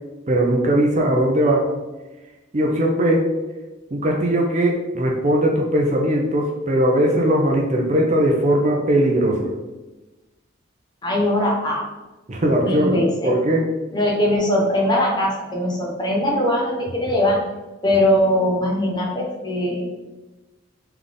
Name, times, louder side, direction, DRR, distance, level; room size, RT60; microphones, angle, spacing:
voice 1, 0.3-1.7 2.5-3.3 3.9-9.5 12.3-13.7, right 1 dB, 35° right, 0 dB, 0.6 m, -19 dB
voice 2, 11.0-11.9 12.6-13.3 13.9-17.4 17.8-19.9, left 1 dB, 20° left, -2 dB, 0.8 m, -21 dB
3.9 x 3.4 x 3.6 m, 1.1 s
head